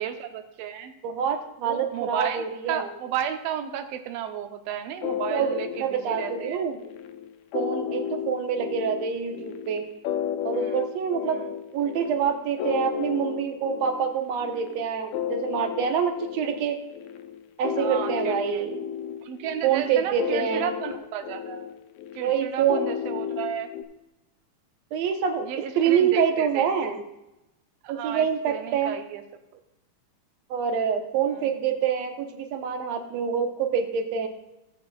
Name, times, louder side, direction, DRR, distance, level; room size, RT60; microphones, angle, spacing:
voice 1, 0.0-0.9 1.6-6.6 10.5-10.8 11.2-11.5 17.8-18.7 19.2-21.7 22.1-23.7 25.4-27.0 27.8-29.2 31.3-31.4, right 10 dB, 85° right, 6 dB, 1.4 m, -33 dB
voice 2, 1.0-2.9 5.3-6.8 7.5-9.9 10.4-11.4 11.7-16.8 17.6-18.7 19.6-20.7 22.2-22.8 24.9-25.5 25.8-27.0 27.9-29.0 30.5-34.3, right 7 dB, 65° right, 5 dB, 1.9 m, -26 dB
sound 1, 5.0-23.8, left 9 dB, 75° left, 1.8 m, -33 dB
16.0 x 8.1 x 2.3 m, 0.92 s
omnidirectional pair, 3.7 m